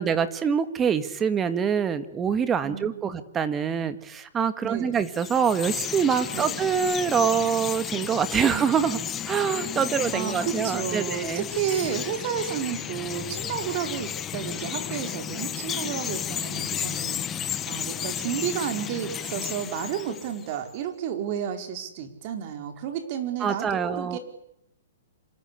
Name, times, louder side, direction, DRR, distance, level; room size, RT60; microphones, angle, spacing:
voice 1, 0.0-9.0 9.3-11.5 23.4-24.2, right 7 dB, 15° right, 12 dB, 1.8 m, -25 dB
voice 2, 4.6-5.0 6.3-6.6 8.5-8.6 10.1-24.2, right 9 dB, 40° right, 6 dB, 4.7 m, -31 dB
Chirp tweet, 5.0-20.6, left 9 dB, 15° left, 1.3 m, -33 dB
27.5 x 25.5 x 8.5 m, 0.80 s
hypercardioid pair, 155°, 0 cm